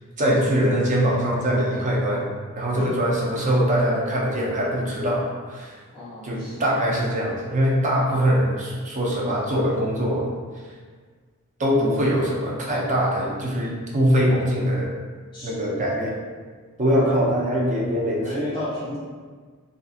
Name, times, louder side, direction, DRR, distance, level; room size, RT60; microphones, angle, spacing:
voice 1, 0.2-2.3 2.6-5.8 6.2-10.3 11.6-14.9 15.4-16.2 16.8-18.5, equal, 35° right, -4 dB, 0.5 m, -22 dB
voice 2, 5.9-6.7 15.3-15.6 16.9-17.2 18.2-19.0, left 1 dB, 20° left, -10 dB, 0.9 m, -33 dB
2.7 x 2.4 x 2.4 m, 1.5 s
head